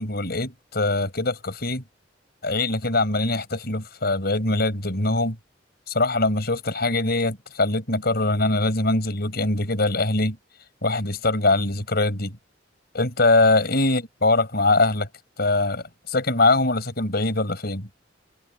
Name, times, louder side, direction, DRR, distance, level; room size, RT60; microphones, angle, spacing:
voice 1, 0.0-1.8 2.4-5.4 5.9-10.4 10.8-12.4 12.9-15.1 15.4-17.9, left 2 dB, 55° left, 6.2 m, -22 dB
head